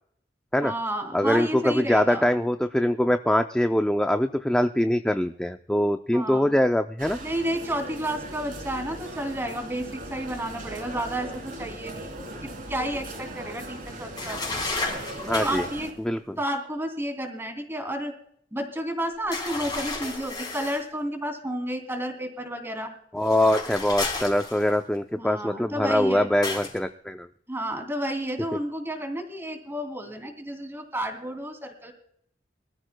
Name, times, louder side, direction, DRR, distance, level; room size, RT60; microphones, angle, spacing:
voice 1, 0.6-2.3 6.1-6.6 7.2-12.1 12.4-15.0 15.4-15.9 16.4-18.1 18.5-22.9 25.2-26.3 27.5-31.9, right 1 dB, 15° right, 5 dB, 2.7 m, -31 dB
voice 2, 1.1-7.2 15.2-15.7 16.0-16.4 23.1-27.3, left 1 dB, 5° left, 6 dB, 0.4 m, -23 dB
sound 1, 7.0-15.9, right 1 dB, 50° right, 3.3 m, -39 dB
sound 2, 14.2-15.8 19.3-20.9 23.2-25.0 26.4-26.8, left 3 dB, 25° left, 4.0 m, -32 dB
24.5 x 13.5 x 2.2 m, 0.68 s
head